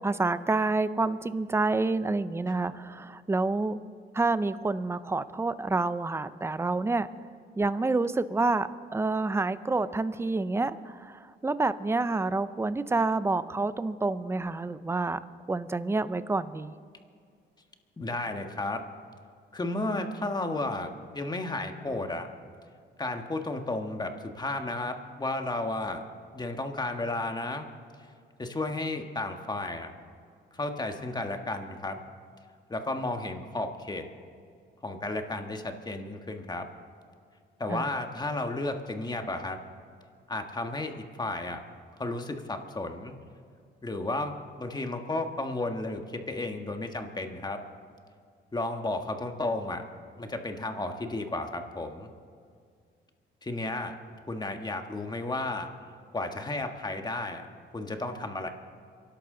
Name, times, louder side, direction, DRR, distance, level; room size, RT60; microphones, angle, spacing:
voice 1, 0.0-3.8 4.1-7.1 7.6-15.2 15.5-16.7 37.7-37.9, right 3 dB, 15° right, 14 dB, 0.6 m, -28 dB
voice 2, 18.0-18.8 19.5-22.3 23.0-26.0 26.3-27.7 28.4-29.9 30.5-32.0 32.7-34.0 34.8-36.7 37.6-39.6 40.3-41.6 42.0-43.1 43.8-47.6 48.5-49.8 50.2-52.1 53.4-53.9 54.3-55.7 56.1-57.5 57.7-58.5, left 2 dB, 20° left, 5 dB, 1.5 m, -33 dB
26.5 x 11.5 x 3.9 m, 2.2 s
cardioid pair, 90°, 20 cm